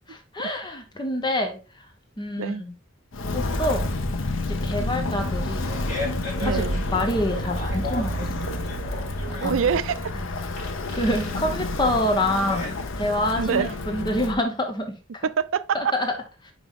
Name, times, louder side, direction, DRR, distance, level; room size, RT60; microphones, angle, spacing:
voice 1, 0.1-1.6 2.2-2.7 3.3-3.9 4.5-5.7 6.4-6.6 6.9-8.7 9.3-9.6 10.6-15.0 15.7-16.1, left 1 dB, 20° left, 0.9 m, -27 dB
Walk footsteps, 3.1-14.4, left 2 dB, 75° left, 0.8 m, -29 dB
Fart, 5.6-13.3, left 2 dB, 35° left, 3.3 m, -37 dB
voice 2, 6.4-6.8 9.4-10.1 13.4-13.7 15.2-15.9, right 6 dB, 80° right, 0.4 m, -25 dB
5.5 x 4.8 x 3.6 m
head